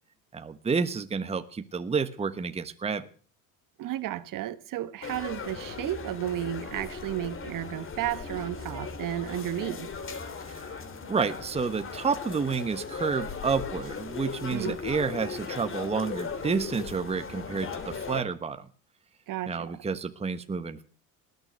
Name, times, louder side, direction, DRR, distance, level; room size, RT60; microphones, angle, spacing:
voice 1, 0.3-3.0 10.5-10.8 11.1-18.7 19.5-20.8, right 5 dB, 15° right, 1.2 m, -30 dB
voice 2, 3.8-9.9 14.5-14.8 19.3-19.7, right 13 dB, 45° right, 1.4 m, -33 dB
sound 1, 5.0-18.2, left 5 dB, 25° left, 2.7 m, -37 dB
19.5 x 9.2 x 8.1 m
hypercardioid pair, 90°, 45 cm